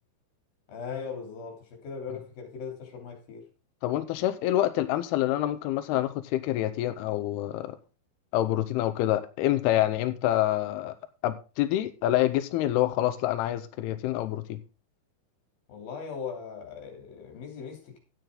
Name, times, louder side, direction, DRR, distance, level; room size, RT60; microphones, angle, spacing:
voice 1, 0.7-3.5 15.7-18.0, left 6 dB, 55° left, 4.6 m, -39 dB
voice 2, 3.8-7.8 8.3-10.9 11.2-14.6, left 14 dB, 85° left, 2.3 m, -27 dB
12.5 x 9.2 x 3.8 m
omnidirectional pair, 5.4 m